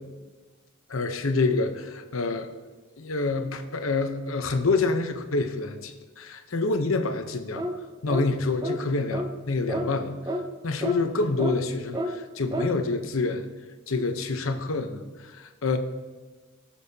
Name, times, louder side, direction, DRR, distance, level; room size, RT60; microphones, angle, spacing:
voice 1, 0.9-2.5 3.0-7.6 8.0-10.1 10.6-13.5 13.9-15.8, left 3 dB, 80° left, 7 dB, 0.9 m, -27 dB
sound 1, 7.6-7.8 8.1-8.3 8.6-8.8 9.1-9.3 9.7-9.9 10.3-10.4 10.8-11.0 11.4-11.5 11.9-12.1 12.5-12.7, equal, 20° right, 0.7 m, -29 dB
19.0 x 7.2 x 2.8 m, 1.3 s
head